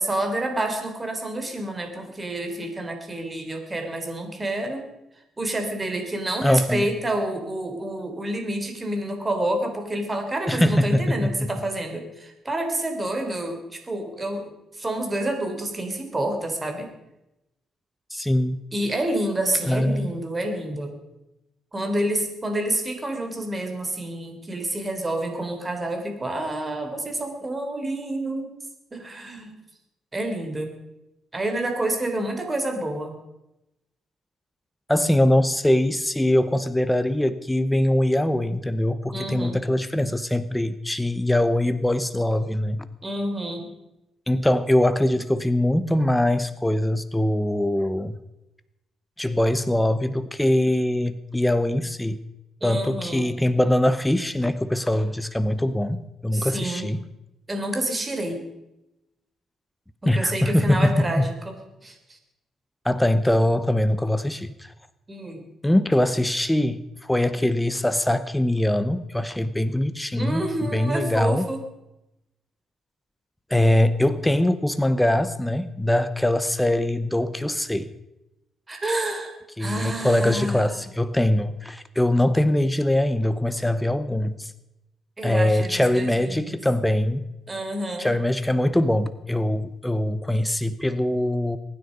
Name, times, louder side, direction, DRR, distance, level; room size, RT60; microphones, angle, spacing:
voice 1, 0.0-4.9 5.4-16.9 18.7-21.0 21.7-28.5 28.9-29.6 30.1-30.8 31.3-33.2 39.1-39.6 43.0-43.7 52.6-53.3 56.3-56.9 57.5-58.4 60.0-62.2 65.1-65.5 70.1-71.6 78.7-80.8 85.2-86.6 87.5-88.2, right 1 dB, 20° right, 5 dB, 3.6 m, -28 dB
voice 2, 6.4-6.9 10.5-11.3 18.1-18.6 19.7-20.1 34.9-42.9 44.3-48.2 49.2-52.2 52.6-57.0 60.1-61.2 62.8-64.7 65.6-71.5 73.5-77.9 79.6-84.5 85.2-87.3 88.0-91.6, left 1 dB, 5° left, 12 dB, 0.9 m, -22 dB
22.5 x 9.8 x 5.3 m, 0.91 s
cardioid pair, 90°, 0 cm